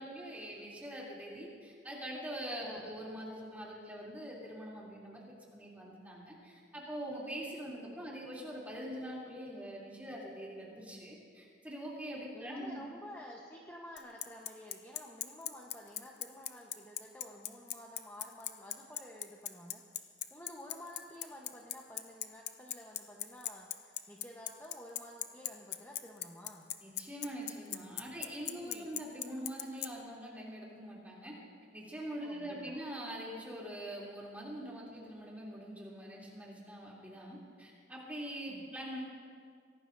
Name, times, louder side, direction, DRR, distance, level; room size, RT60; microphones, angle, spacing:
voice 1, 0.0-12.8 26.8-31.3 31.7-39.0, equal, 10° right, -5 dB, 3.0 m, -43 dB
voice 2, 12.3-19.8 20.3-26.7 28.5-28.9 32.2-32.8 38.5-38.7, left 1 dB, 10° left, -2 dB, 1.0 m, -51 dB
Bicycle, 14.0-29.9, left 13 dB, 60° left, 0.6 m, -38 dB
24.0 x 17.5 x 2.7 m, 2.1 s
head